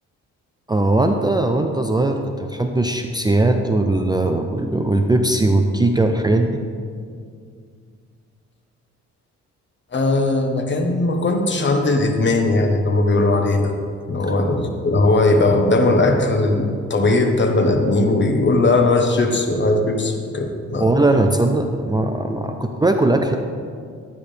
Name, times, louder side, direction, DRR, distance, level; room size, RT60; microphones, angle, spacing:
voice 1, 0.7-6.6 20.8-23.4, right 2 dB, 15° right, 5 dB, 0.6 m, -19 dB
voice 2, 9.9-13.7 14.1-20.9, left 2 dB, 40° left, 4 dB, 1.3 m, -18 dB
12.5 x 9.7 x 3.4 m, 2.2 s
cardioid pair, 90°, 30 cm